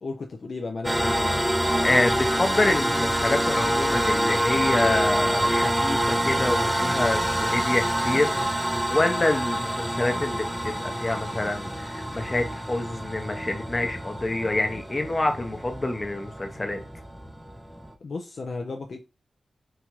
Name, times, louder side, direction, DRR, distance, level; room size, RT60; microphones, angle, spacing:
voice 1, 0.0-1.3 18.0-19.0, left 3 dB, 65° left, 0.3 m, -34 dB
sound 1, 0.8-17.9, right 1 dB, 5° right, 0.4 m, -26 dB
voice 2, 1.8-8.4 8.9-16.8, left 2 dB, 35° left, 0.6 m, -26 dB
2.8 x 2.3 x 2.9 m
cardioid pair, 50°, 0 cm